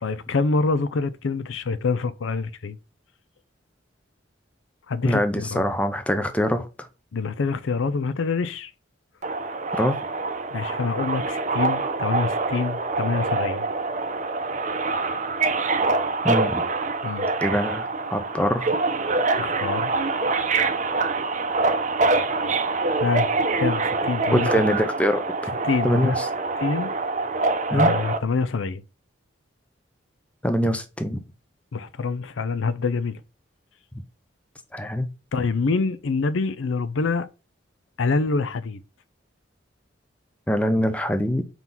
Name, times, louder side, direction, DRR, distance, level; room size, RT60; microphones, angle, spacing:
voice 1, 0.0-2.8 4.9-5.6 7.1-8.7 10.5-13.7 17.0-17.3 19.4-20.0 23.0-23.3 23.6-24.5 25.6-26.2 26.6-26.9 27.7-28.8 31.7-33.2 35.3-37.3 38.0-38.8, left 4 dB, 80° left, 0.5 m, -26 dB
voice 2, 5.0-6.9 9.7-10.0 16.2-16.7 17.4-18.8 24.3-25.5 25.8-26.3 27.7-27.9 30.4-31.2 34.7-35.1 40.5-41.4, equal, 5° left, 0.6 m, -24 dB
Subway metro underground, 9.2-28.2, right 3 dB, 40° right, 0.7 m, -25 dB
4.5 x 3.9 x 5.5 m
head